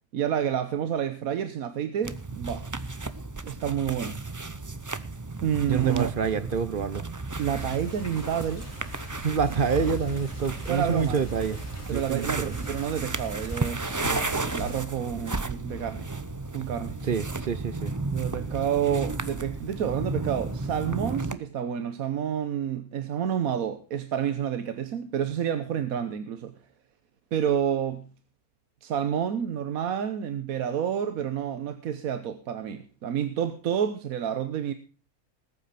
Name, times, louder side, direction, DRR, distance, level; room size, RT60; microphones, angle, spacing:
voice 1, 0.1-2.7 3.4-4.2 5.4-6.1 7.4-8.7 10.7-11.2 11.9-16.1 16.5-17.0 18.1-26.5 27.3-28.1 28.8-34.7, right 9 dB, 70° right, 1.3 m, -29 dB
sound 1, 2.0-21.3, right 3 dB, 25° right, 0.3 m, -34 dB
voice 2, 5.7-7.1 9.2-11.6 11.9-12.5 17.1-17.9, right 6 dB, 45° right, 0.7 m, -27 dB
sound 2, 7.3-14.8, left 3 dB, 10° left, 5.0 m, -44 dB
sound 3, 14.0-20.4, left 1 dB, 35° left, 3.7 m, -45 dB
20.0 x 8.7 x 4.2 m
omnidirectional pair, 1.6 m